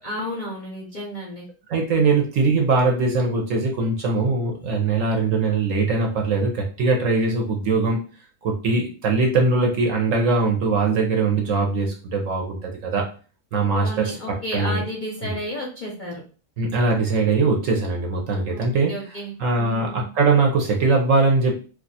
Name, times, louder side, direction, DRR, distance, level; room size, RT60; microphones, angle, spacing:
voice 1, 0.0-1.4 13.8-16.2 18.5-20.1, equal, 45° left, -3 dB, 0.6 m, -32 dB
voice 2, 1.7-8.0 8.4-13.0 13.5-14.8 15.2-15.4 16.6-18.9 19.4-21.6, right 3 dB, 60° right, 1 dB, 0.9 m, -21 dB
2.7 x 2.4 x 3.9 m, 0.38 s
omnidirectional pair, 1.7 m